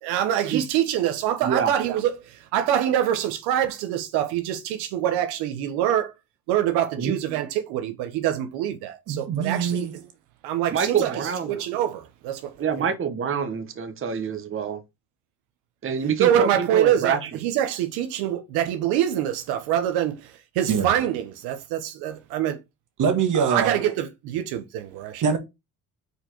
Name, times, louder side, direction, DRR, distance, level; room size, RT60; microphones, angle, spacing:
voice 1, 0.0-6.1 6.5-9.9 10.4-12.5 12.8-12.9 16.2-22.6 23.4-25.4, right 11 dB, 90° right, 1.0 m, -25 dB
voice 2, 9.1-9.9 20.7-20.9 23.0-23.8 25.2-25.4, right 6 dB, 55° right, 1.8 m, -23 dB
voice 3, 10.7-11.5 12.6-14.8 15.8-17.3, right 6 dB, 35° right, 1.1 m, -26 dB
5.0 x 4.6 x 4.4 m
cardioid pair, 95°, 38 cm